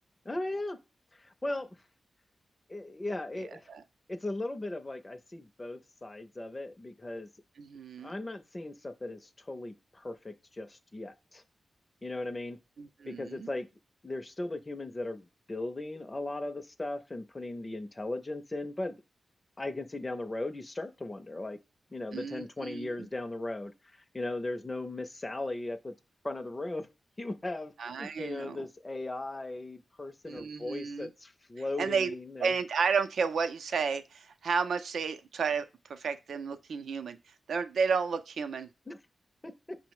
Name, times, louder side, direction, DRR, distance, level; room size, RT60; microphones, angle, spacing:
voice 1, 0.2-0.8 1.1-1.7 2.7-3.7 4.1-7.3 8.0-11.4 12.0-12.6 13.1-13.7 14.0-19.0 19.6-21.6 21.9-25.9 26.2-26.9 27.2-27.7 28.0-32.5 38.9-39.0 39.4-39.8, left 2 dB, 20° left, 0.4 m, -37 dB
voice 2, 7.6-8.1 12.8-13.5 22.1-23.1 27.8-28.6 30.3-31.1 31.8-32.1 32.4-37.2 37.5-38.7, right 5 dB, 85° right, 0.4 m, -32 dB
5.6 x 2.0 x 4.6 m
wide cardioid pair, 130°, 0 cm